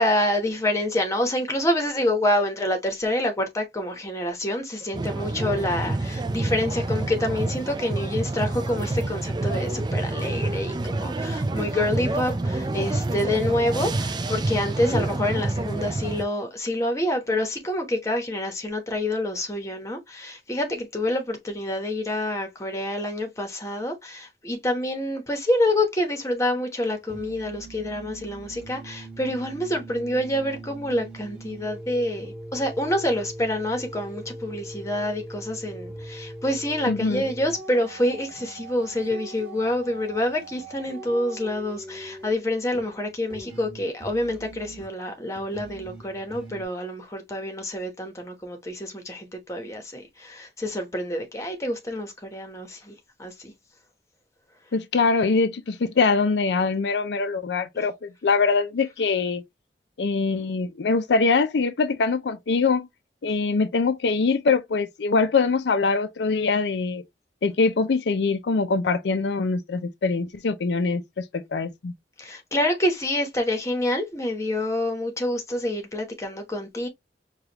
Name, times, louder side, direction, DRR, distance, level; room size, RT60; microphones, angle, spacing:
voice 1, 0.0-53.5 57.7-57.8 72.2-76.9, left 1 dB, 15° left, 1.0 m, -27 dB
sound 1, 4.9-16.2, right 2 dB, 25° right, 0.4 m, -28 dB
sound 2, 26.9-46.6, right 2 dB, 5° right, 1.4 m, -41 dB
voice 2, 36.9-37.2 54.7-59.4 60.0-62.9 63.2-67.0 67.4-71.9, left 4 dB, 75° left, 0.5 m, -23 dB
4.9 x 2.4 x 2.9 m
head